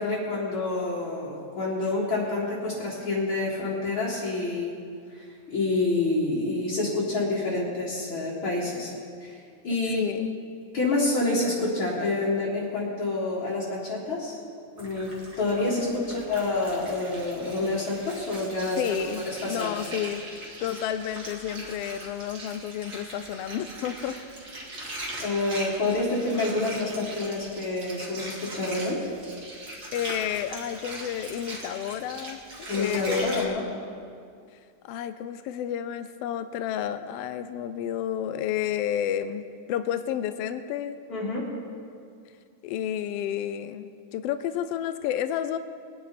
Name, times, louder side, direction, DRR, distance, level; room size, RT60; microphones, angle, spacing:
voice 1, 0.0-4.7 5.1-8.9 9.2-10.0 10.7-14.4 14.8-18.8 19.3-19.8 25.2-29.0 32.7-33.7 41.1-41.5, left 2 dB, 45° left, -7 dB, 2.6 m, -28 dB
voice 2, 9.9-10.3 15.7-16.2 18.8-20.2 20.6-24.2 29.9-33.6 34.8-41.0 42.6-45.6, left 10 dB, 85° left, 11 dB, 1.4 m, -31 dB
Water, 14.8-33.5, right 1 dB, 35° right, 2.3 m, -40 dB
21.5 x 9.8 x 4.3 m, 2.3 s
omnidirectional pair, 3.3 m